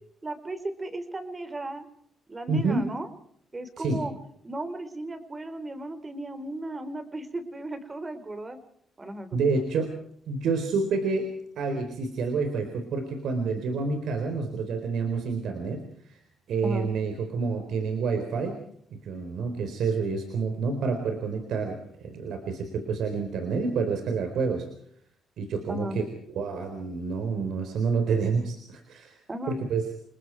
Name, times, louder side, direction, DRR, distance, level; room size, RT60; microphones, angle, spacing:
voice 1, 0.2-1.9 2.3-3.1 3.5-4.1 4.4-8.6 9.0-9.6 16.6-16.9 25.7-26.0 29.3-29.6, right 1 dB, 25° right, 11 dB, 3.5 m, -35 dB
voice 2, 2.5-2.8 3.8-4.0 9.3-9.9 10.3-11.3 11.6-16.2 16.5-18.6 18.9-24.7 25.4-26.1 26.4-29.2 29.5-29.9, right 4 dB, 75° right, 5 dB, 4.0 m, -28 dB
29.5 x 20.5 x 4.6 m, 0.68 s
cardioid pair, 90°, 0 cm